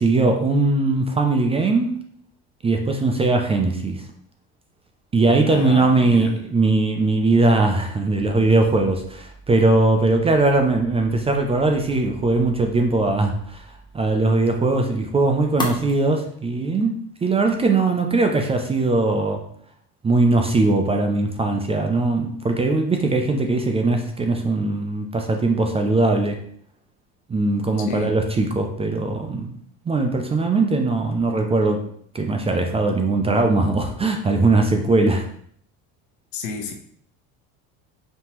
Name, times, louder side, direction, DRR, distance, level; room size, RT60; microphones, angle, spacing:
voice 1, 0.0-1.9 2.6-4.0 5.1-13.7 13.9-19.4 20.0-26.4 27.3-29.5 29.9-31.8 32.1-35.3, right 3 dB, 15° right, 4 dB, 0.4 m, -20 dB
voice 2, 5.4-6.3 27.9-28.1 36.3-36.7, left 5 dB, 80° left, 4 dB, 0.9 m, -31 dB
sound 1, 8.1-15.9, left 1 dB, 10° left, 0.8 m, -39 dB
5.3 x 2.8 x 3.0 m, 0.63 s
cardioid pair, 120°, 38 cm